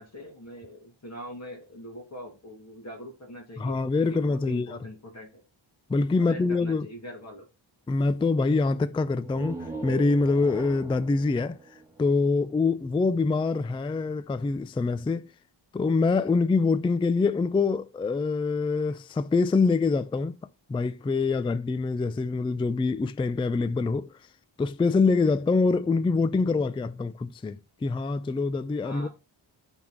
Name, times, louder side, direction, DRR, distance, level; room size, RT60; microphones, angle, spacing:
voice 1, 0.0-5.4 6.2-7.5 28.8-29.1, equal, 35° left, 2.1 m, -42 dB
voice 2, 3.6-4.8 5.9-6.9 7.9-11.6 12.0-15.3 15.7-20.3 20.7-24.1 24.6-29.1, left 3 dB, 15° left, 0.3 m, -25 dB
sound 1, 9.2-12.9, right 3 dB, 5° right, 1.4 m, -41 dB
6.1 x 3.6 x 5.9 m
cardioid pair, 90°, 47 cm